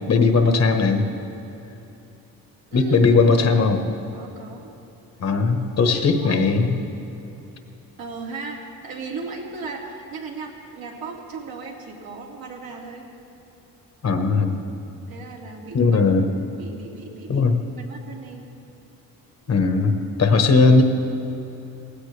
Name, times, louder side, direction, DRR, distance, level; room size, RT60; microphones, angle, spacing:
voice 1, 0.1-1.0 2.7-3.8 5.2-6.7 14.0-14.6 15.7-16.3 17.3-17.6 19.5-19.9 20.2-20.8, left 4 dB, 45° left, 5 dB, 1.3 m, -18 dB
voice 2, 4.1-4.7 5.8-6.4 8.0-13.1 15.1-16.0 16.6-17.5 17.8-18.5, right 4 dB, 70° right, -2 dB, 2.5 m, -36 dB
19.0 x 16.5 x 3.4 m, 2.9 s
cardioid pair, 120°, 37 cm